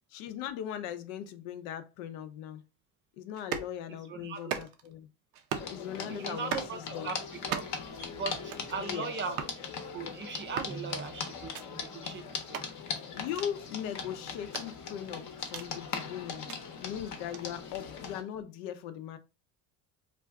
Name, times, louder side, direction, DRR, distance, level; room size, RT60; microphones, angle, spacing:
voice 1, 0.1-2.6 3.2-5.1 5.7-7.1 8.8-9.1 13.1-16.5 16.8-19.2, left 10 dB, 75° left, 0.6 m, -39 dB
sound 1, 3.3-3.7 4.3-4.9 5.3-5.8 6.3-6.7 7.3-7.9 8.3-8.7 9.3-9.6 10.3-10.8 11.4-11.6 12.4-12.7 13.3-13.5 14.4-15.7 16.3-16.6 17.3-17.4, right 8 dB, 85° right, 0.6 m, -38 dB
voice 2, 3.9-4.4 6.1-6.8 7.0-7.2 7.4-7.6 8.2-9.4 9.9-12.7, right 5 dB, 30° right, 0.4 m, -38 dB
sound 2, 5.5-18.2, left 5 dB, 40° left, 0.8 m, -40 dB
2.5 x 2.3 x 3.4 m
supercardioid pair, 100°, 43 cm